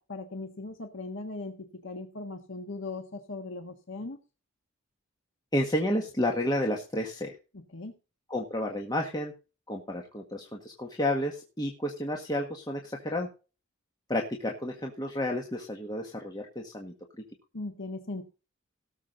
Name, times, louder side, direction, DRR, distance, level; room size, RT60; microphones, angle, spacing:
voice 1, 0.0-4.2 7.7-7.9 17.5-18.2, left 2 dB, 65° left, 5 dB, 1.5 m, -39 dB
voice 2, 5.5-7.4 8.3-9.3 9.7-13.3 14.1-16.9, left 1 dB, 20° left, 1 dB, 1.7 m, -31 dB
17.5 x 7.3 x 4.0 m, 0.32 s
head